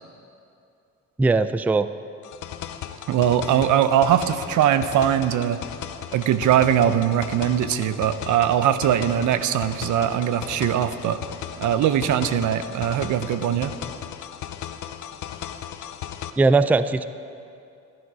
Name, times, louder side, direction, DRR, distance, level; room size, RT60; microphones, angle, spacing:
voice 1, 1.2-1.9 16.4-17.1, right 3 dB, 5° right, 13 dB, 0.3 m, -19 dB
sound 1, 2.2-16.3, left 10 dB, 75° left, 0.8 m, -36 dB
voice 2, 3.1-5.6 6.1-11.2 11.6-13.7, right 10 dB, 75° right, 12 dB, 0.7 m, -21 dB
15.0 x 11.0 x 4.8 m, 2.5 s
cardioid pair, 90°, 30 cm